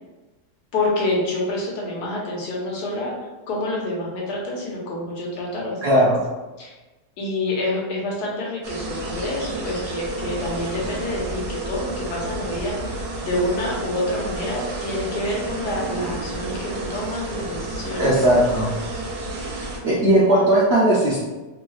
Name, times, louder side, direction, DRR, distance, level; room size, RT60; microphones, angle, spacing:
voice 1, 0.7-3.1 3.5-5.9 6.6-6.7 7.2-18.0 18.4-18.6, left 1 dB, 80° left, -3 dB, 1.4 m, -27 dB
voice 2, 5.8-6.2 18.0-18.7 19.8-21.2, right 1 dB, 60° right, -6 dB, 0.7 m, -17 dB
sound 1, 8.6-19.8, right 2 dB, 90° right, 1.2 m, -31 dB
3.2 x 2.2 x 3.1 m, 1.1 s
omnidirectional pair, 1.7 m